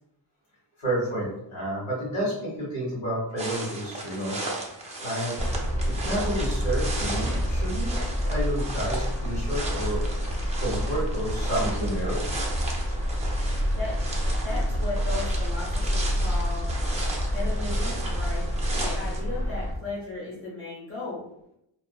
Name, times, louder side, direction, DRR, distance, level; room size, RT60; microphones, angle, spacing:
voice 1, 0.8-4.4 5.0-5.3 5.8-7.9 8.3-12.4, right 1 dB, 90° left, -7 dB, 1.5 m, -30 dB
sound 1, 3.4-19.2, right 2 dB, 15° right, 0.3 m, -36 dB
sound 2, 5.4-19.7, equal, 5° left, 0.7 m, -28 dB
voice 2, 14.4-16.7 17.3-18.5 18.7-21.2, left 3 dB, 25° left, -7 dB, 1.1 m, -36 dB
2.5 x 2.4 x 2.3 m, 0.80 s
wide cardioid pair, 155°, 47 cm